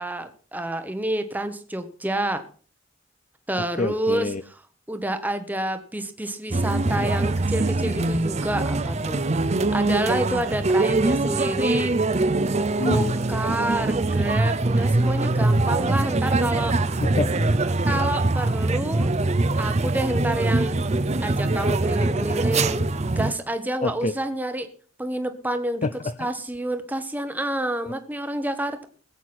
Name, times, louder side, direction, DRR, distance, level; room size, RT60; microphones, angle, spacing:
voice 1, 0.0-2.4 3.5-4.3 4.9-9.2 9.7-11.9 12.8-16.8 17.9-19.1 19.6-20.8 21.2-22.8 23.2-24.7 25.0-25.9 26.2-28.8, right 1 dB, 10° right, 8 dB, 0.9 m, -28 dB
voice 2, 3.6-4.4 12.8-13.1 17.0-17.7 23.8-24.1 25.8-26.3 27.8-27.9, left 2 dB, 35° left, 12 dB, 0.5 m, -28 dB
sound 1, 6.5-23.3, right 2 dB, 30° right, 0.6 m, -23 dB
20.0 x 8.2 x 4.2 m, 0.43 s
head